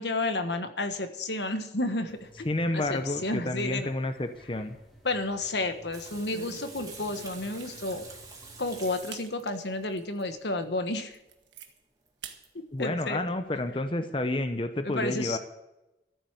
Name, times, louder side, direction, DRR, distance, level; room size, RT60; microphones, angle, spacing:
voice 1, 0.0-2.5 2.7-3.9 5.0-8.1 8.6-11.2 12.8-13.2 14.8-15.4, left 2 dB, 75° left, 8 dB, 1.3 m, -31 dB
sound 1, 2.1-9.0, right 1 dB, ahead, 2.5 m, -55 dB
voice 2, 2.5-4.8 12.7-15.4, left 1 dB, 30° left, 8 dB, 0.7 m, -30 dB
sound 2, 4.3-4.9 5.3-5.5 6.0-8.1 8.6-8.7 9.1-9.3 9.8-9.9 10.4-10.5 10.9-11.7 12.2-12.4 12.8-13.7, right 5 dB, 90° right, 1.5 m, -47 dB
Water tap faucet / Sink (filling or washing), 5.9-10.2 11.7-11.8 12.1-12.2 12.4-12.5, right 4 dB, 20° right, 2.2 m, -47 dB
14.0 x 8.1 x 8.1 m, 0.95 s
head